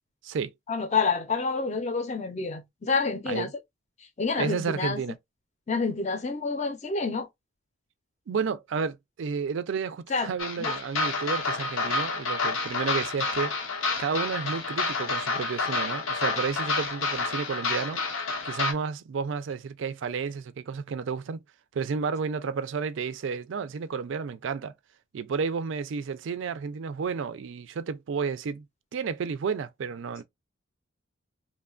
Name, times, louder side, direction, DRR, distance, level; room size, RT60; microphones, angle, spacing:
voice 1, 0.7-3.5 4.2-5.0 5.7-7.3 10.1-10.3 10.6-10.7, left 4 dB, 35° left, 0.5 m, -28 dB
voice 2, 4.4-5.2 8.3-13.5 14.0-18.0 18.4-21.4 21.7-24.7 25.1-28.6 28.9-30.2, right 5 dB, 65° right, 0.4 m, -31 dB
sound 1, 10.4-18.7, left 3 dB, 80° left, 0.7 m, -29 dB
3.0 x 2.2 x 2.4 m
head